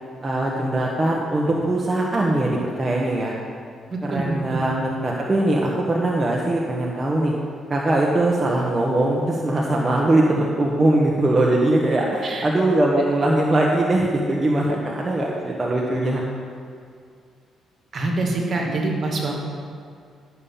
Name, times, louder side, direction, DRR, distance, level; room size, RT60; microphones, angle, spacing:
voice 1, 0.2-3.4 4.0-7.3 7.7-16.2, right 1 dB, 25° right, -3 dB, 1.4 m, -21 dB
voice 2, 3.9-4.6 12.2-12.5 17.9-19.6, right 2 dB, 50° right, 0 dB, 2.2 m, -25 dB
12.0 x 7.1 x 5.8 m, 2.3 s
cardioid pair, 90°, 0 cm